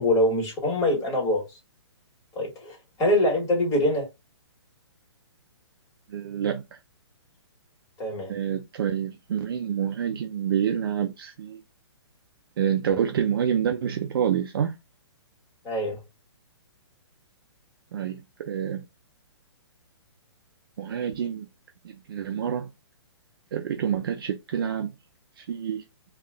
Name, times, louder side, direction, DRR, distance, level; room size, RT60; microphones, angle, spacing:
voice 1, 0.0-1.4 2.4-4.1 8.0-8.3 15.7-16.0, left 1 dB, 20° left, 1.6 m, -24 dB
voice 2, 6.1-6.8 8.3-11.6 12.6-14.7 17.9-18.8 20.8-21.5 21.8-22.7 23.5-24.9 25.4-25.8, right 8 dB, 55° right, 0.4 m, -27 dB
2.7 x 2.3 x 3.4 m
figure-of-eight pair, 125°, 15 cm